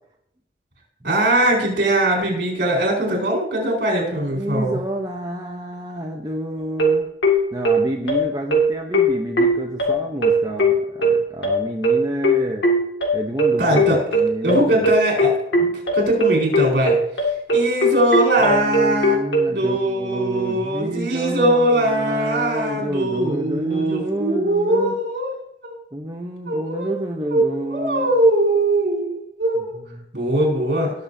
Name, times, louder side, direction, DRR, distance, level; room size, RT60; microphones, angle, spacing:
voice 1, 1.0-4.8 13.6-17.0 17.5-19.2 19.5-25.3 25.6-25.8 26.5-26.9 27.3-29.8 30.1-30.9, right 1 dB, 60° right, -1 dB, 4.3 m, -21 dB
voice 2, 4.3-7.1 7.5-12.7 13.1-14.9 18.4-25.0 25.9-28.2 29.9-30.1, right 1 dB, 20° right, 0 dB, 0.8 m, -29 dB
sound 1, 6.8-19.5, equal, 70° left, 2.1 m, -18 dB
18.5 x 7.1 x 2.7 m, 0.76 s
head